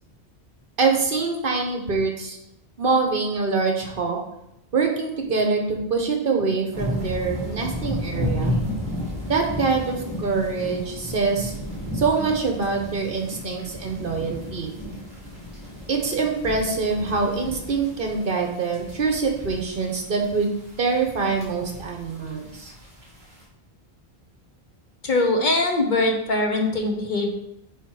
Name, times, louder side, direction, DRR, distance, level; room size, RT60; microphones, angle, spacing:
voice 1, 0.8-2.4 2.8-4.2 4.7-8.5 9.3-11.5 11.9-14.7 15.9-20.5 20.8-22.7, right 4 dB, 60° right, 2 dB, 1.2 m, -24 dB
sound 1, 6.7-23.4, equal, 40° right, 1.7 m, -33 dB
voice 2, 25.0-27.3, left 2 dB, 50° left, 2 dB, 1.0 m, -22 dB
8.4 x 3.0 x 4.7 m, 0.82 s
omnidirectional pair, 1.1 m